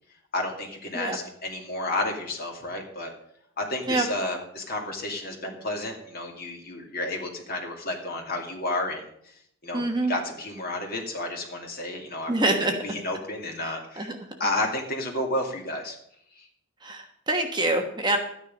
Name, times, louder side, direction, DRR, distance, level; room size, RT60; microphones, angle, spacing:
voice 1, 0.3-3.1 3.6-9.0 9.6-14.1 14.4-16.0 16.4-16.5, left 2 dB, 45° left, 1 dB, 2.4 m, -31 dB
voice 2, 9.7-10.1 12.3-12.7 14.0-14.1 16.8-18.2, right 2 dB, 20° right, 3 dB, 1.2 m, -25 dB
12.5 x 9.7 x 5.4 m, 0.71 s
head